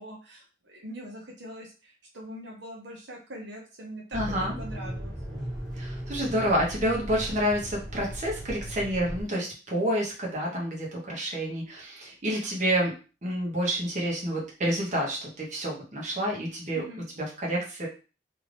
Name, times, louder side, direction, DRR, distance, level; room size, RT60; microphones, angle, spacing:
voice 1, 0.0-4.2 4.6-5.2 16.7-17.0, equal, 70° right, -1 dB, 0.8 m, -42 dB
sound 1, 4.1-9.2, equal, 25° right, 1.4 m, -37 dB
voice 2, 4.1-4.5 5.7-16.8 17.2-17.9, equal, 40° right, -2 dB, 1.0 m, -29 dB
2.8 x 2.5 x 3.3 m, 0.33 s
head